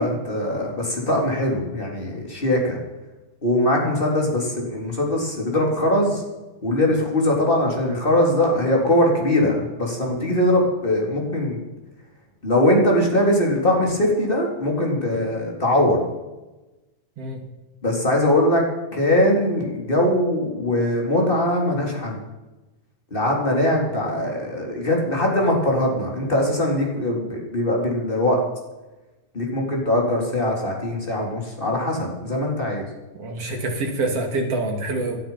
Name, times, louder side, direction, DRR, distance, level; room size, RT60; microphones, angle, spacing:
voice 1, 0.0-2.8 3.4-6.2 6.6-11.6 12.4-16.0 17.8-18.6 18.9-22.2 23.1-28.4 29.3-32.9, left 1 dB, 15° left, 0 dB, 3.4 m, -21 dB
voice 2, 33.2-35.2, right 2 dB, 50° right, 2 dB, 3.4 m, -26 dB
18.5 x 11.5 x 5.7 m, 1.1 s
omnidirectional pair, 3.6 m